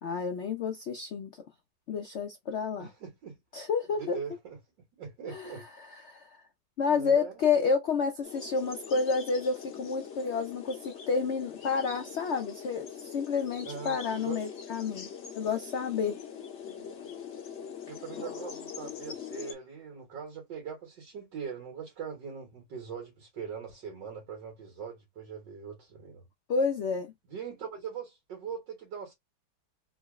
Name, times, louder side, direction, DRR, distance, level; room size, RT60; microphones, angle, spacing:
voice 1, 0.0-1.3 1.9-2.9 3.5-4.2 5.3-5.6 5.9-6.3 6.8-15.1 15.3-16.2 26.5-27.1, left 5 dB, 70° left, 0.6 m, -30 dB
voice 2, 2.8-3.4 3.9-4.6 4.9-5.6 6.9-7.4 13.6-14.4 17.9-26.3 27.3-29.1, right 7 dB, 90° right, 1.9 m, -41 dB
sound 1, 8.2-19.5, left 7 dB, 50° left, 1.0 m, -43 dB
3.8 x 2.0 x 3.5 m
omnidirectional pair, 1.9 m